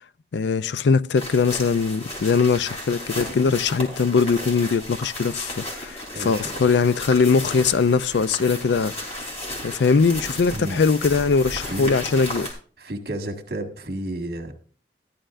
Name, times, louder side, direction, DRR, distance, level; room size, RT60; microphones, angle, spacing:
voice 1, 0.3-9.2 9.6-12.5, left 5 dB, 75° left, 0.4 m, -21 dB
sound 1, 1.2-12.5, left 1 dB, 40° left, 3.6 m, -34 dB
voice 2, 6.1-6.5 10.5-10.8 11.7-11.9 12.8-14.5, right 1 dB, 55° right, 1.7 m, -31 dB
14.0 x 11.0 x 2.5 m
head